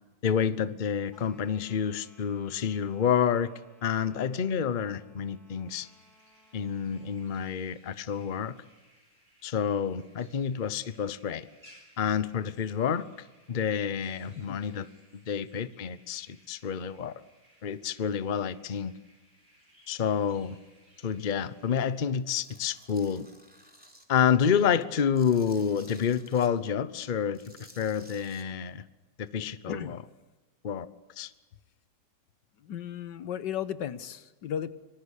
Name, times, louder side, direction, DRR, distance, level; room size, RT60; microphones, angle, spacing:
voice 1, 0.2-3.5 3.8-5.9 6.5-8.6 9.4-11.5 12.0-13.1 13.5-14.9 15.3-17.1 17.6-18.9 19.9-20.6 21.0-23.3 24.1-27.4 27.8-28.8 29.2-30.0 30.6-30.9 31.2-31.3, left 7 dB, 35° left, 15 dB, 0.9 m, -28 dB
sound 1, 1.1-7.3, left 2 dB, 60° left, 4.1 m, -61 dB
sound 2, 5.7-21.9, equal, 25° right, 8.2 m, -62 dB
Tools, 22.3-24.0 24.5-26.5 27.3-28.4, equal, 5° right, 3.3 m, -54 dB
voice 2, 29.7-30.0 32.6-34.7, left 9 dB, 85° left, 14 dB, 1.7 m, -35 dB
25.5 x 20.5 x 8.3 m, 1.2 s
omnidirectional pair, 1.9 m